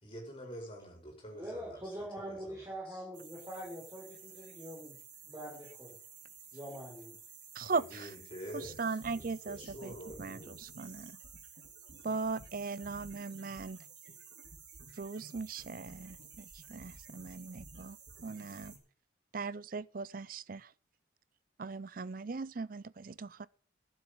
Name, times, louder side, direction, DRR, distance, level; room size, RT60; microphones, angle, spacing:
voice 1, 0.0-3.0 7.7-10.6, equal, 25° left, 4.8 m, -47 dB
voice 2, 1.3-5.0 5.2-6.0 6.5-7.2, equal, 15° right, 4.7 m, -44 dB
sound 1, 3.1-18.8, right 5 dB, 60° right, 3.3 m, -53 dB
voice 3, 7.6-8.1 8.5-9.9 10.2-11.1 12.0-13.8 15.0-18.0 18.2-18.7 19.3-20.7 21.6-23.5, right 4 dB, 45° right, 0.5 m, -39 dB
12.0 x 7.2 x 8.1 m
head